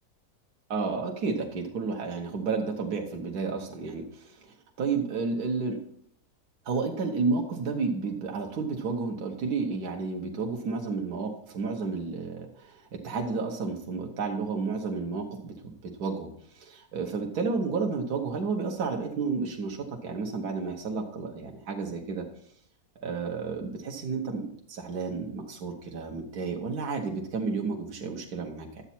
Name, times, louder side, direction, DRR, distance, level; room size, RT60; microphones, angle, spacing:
voice 1, 0.7-5.8 6.6-22.2 23.0-28.8, right 4 dB, 75° right, 1 dB, 1.6 m, -31 dB
11.0 x 8.2 x 4.3 m, 0.67 s
omnidirectional pair, 1.7 m